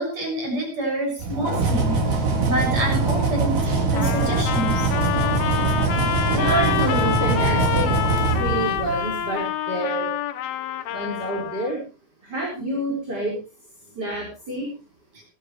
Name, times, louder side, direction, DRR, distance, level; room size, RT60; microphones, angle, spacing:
voice 1, 0.0-2.1 2.4-4.9, right 1 dB, 45° right, 1 dB, 7.9 m, -27 dB
sound 1, 1.2-9.2, right 3 dB, 65° right, 5.4 m, -22 dB
Trumpet, 4.0-11.8, left 12 dB, 85° left, 3.0 m, -27 dB
voice 2, 6.2-8.0 8.4-10.1 10.9-11.8 12.2-13.4 14.0-14.7, right 1 dB, 25° right, -1 dB, 5.4 m, -27 dB
21.0 x 14.0 x 3.2 m, 0.33 s
omnidirectional pair, 4.3 m